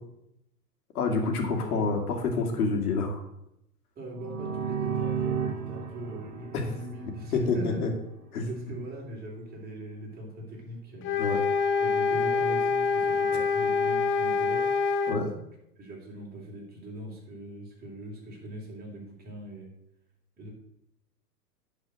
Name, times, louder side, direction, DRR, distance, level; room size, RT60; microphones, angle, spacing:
voice 1, 0.9-3.2 7.3-7.9 8.3-8.5 11.2-11.4 15.1-15.3, left 4 dB, 65° left, 3 dB, 2.4 m, -27 dB
voice 2, 4.0-7.9 8.5-11.1 11.8-14.7 15.8-19.7 20.4-20.5, equal, 20° right, -3 dB, 3.7 m, -41 dB
sound 1, 4.1-7.8, right 7 dB, 60° right, 1.5 m, -33 dB
sound 2, 11.0-15.2, left 4 dB, 25° left, 0.7 m, -26 dB
10.5 x 4.9 x 6.4 m, 0.81 s
hypercardioid pair, 115°, 48 cm